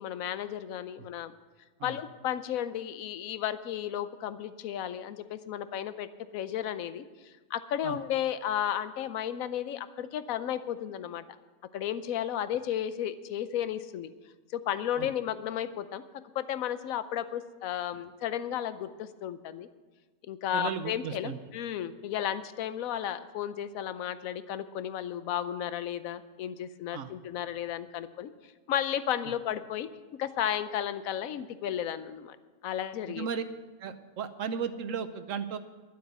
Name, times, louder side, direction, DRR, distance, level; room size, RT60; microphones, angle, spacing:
voice 1, 0.0-1.3 1.8-6.1 6.3-11.2 11.7-14.1 14.5-16.0 16.3-19.7 20.2-29.9 30.2-32.4 32.6-33.3, left 10 dB, 70° left, 13 dB, 1.1 m, -33 dB
voice 2, 20.5-21.4 26.9-27.1 33.1-33.4 33.8-35.6, right 7 dB, 65° right, 11 dB, 1.0 m, -35 dB
12.0 x 7.9 x 8.1 m, 1.3 s
omnidirectional pair, 1.6 m